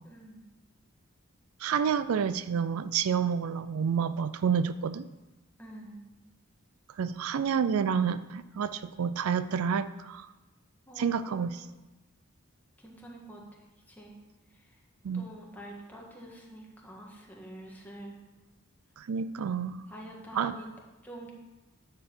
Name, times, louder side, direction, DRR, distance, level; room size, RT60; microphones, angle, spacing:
voice 1, 0.0-0.4 5.6-6.0 7.2-7.3 10.9-11.5 12.8-13.6 13.9-14.2 14.5-14.6 15.1-18.2 19.9-20.7 21.0-21.3, right 1 dB, 10° left, -2 dB, 1.7 m, -46 dB
voice 2, 1.6-5.1 7.0-10.3 11.0-11.6 15.0-15.3 19.0-19.8 20.3-20.5, right 7 dB, 85° right, 14 dB, 0.4 m, -29 dB
10.0 x 4.5 x 7.0 m, 1.1 s
head